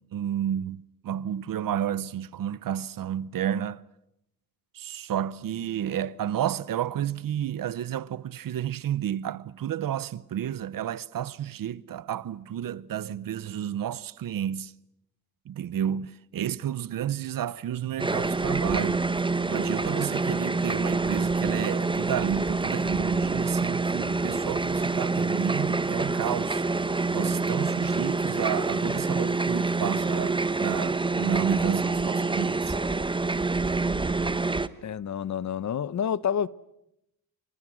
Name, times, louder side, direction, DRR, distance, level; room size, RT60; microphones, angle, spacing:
voice 1, 0.0-3.8 4.7-14.7 15.5-19.1 19.5-26.7 27.1-32.8, right 10 dB, 70° right, 0.9 m, -31 dB
sound 1, 18.0-34.7, right 3 dB, 15° right, 1.1 m, -27 dB
voice 2, 34.8-36.5, left 8 dB, 55° left, 0.9 m, -28 dB
29.0 x 26.0 x 6.3 m
cardioid pair, 100°, 35 cm